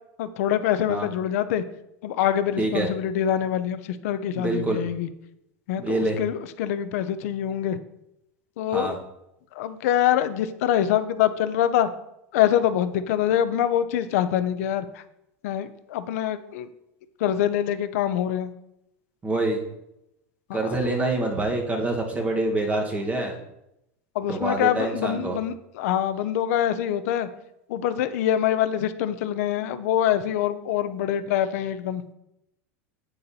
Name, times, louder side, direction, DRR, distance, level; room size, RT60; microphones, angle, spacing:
voice 1, 0.2-1.6 2.0-5.1 5.7-7.8 8.6-8.9 9.6-11.9 12.3-14.9 15.4-16.7 17.2-18.5 20.5-21.1 24.1-27.3 27.7-32.0, left 10 dB, 75° left, 12 dB, 0.6 m, -25 dB
voice 2, 2.6-2.9 4.3-4.8 5.8-6.2 8.7-9.0 19.2-19.6 20.5-23.4 24.3-25.4, right 2 dB, 15° right, 1 dB, 1.2 m, -26 dB
8.3 x 6.8 x 2.7 m, 0.85 s
supercardioid pair, 140°, 8 cm